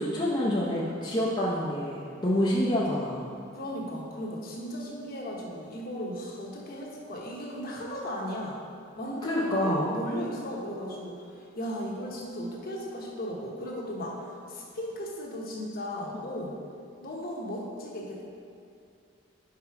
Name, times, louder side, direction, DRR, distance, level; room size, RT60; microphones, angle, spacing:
voice 1, 0.0-3.3 9.2-9.9, left 1 dB, 20° left, -6 dB, 0.6 m, -27 dB
voice 2, 3.5-8.6 9.0-16.5 17.0-18.2, equal, 45° left, -2 dB, 1.1 m, -36 dB
5.4 x 5.0 x 4.7 m, 2.5 s
head